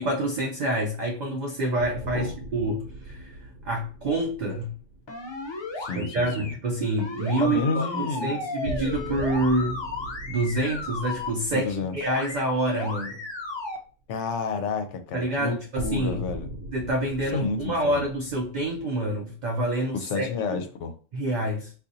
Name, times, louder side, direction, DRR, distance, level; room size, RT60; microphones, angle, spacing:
voice 1, 0.0-3.4 3.6-4.7 5.9-9.8 10.3-13.2 15.1-16.2 16.7-20.6 21.1-21.7, right 1 dB, 60° right, 0.5 m, -27 dB
sound 1, 1.8-5.9 8.6-13.0 13.4-13.5 15.7-18.8, right 1 dB, 80° right, 0.9 m, -39 dB
sound 2, 5.1-6.5 7.0-11.3 12.0-12.4 12.7-13.8, left 3 dB, 45° left, 0.3 m, -34 dB
voice 2, 5.8-6.5 7.4-8.3 11.5-12.0 14.1-15.6 15.8-16.5 17.3-18.0 19.9-21.0, left 4 dB, 75° left, 0.9 m, -30 dB
2.6 x 2.4 x 3.8 m
omnidirectional pair, 1.3 m